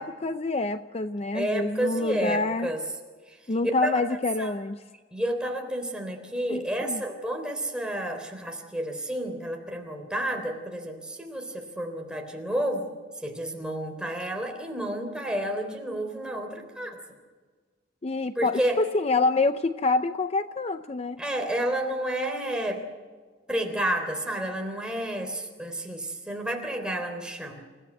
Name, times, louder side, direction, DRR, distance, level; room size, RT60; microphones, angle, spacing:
voice 1, 0.0-2.7 3.5-4.8 6.5-7.0 18.0-21.2, left 3 dB, 35° left, 10 dB, 0.6 m, -27 dB
voice 2, 1.3-2.8 3.3-3.4 3.8-4.1 4.4-4.5 5.1-12.9 13.2-17.0 18.4-18.8 21.2-22.9 23.5-27.6, right 1 dB, 5° right, 2 dB, 3.6 m, -30 dB
28.5 x 15.5 x 7.9 m, 1.4 s
head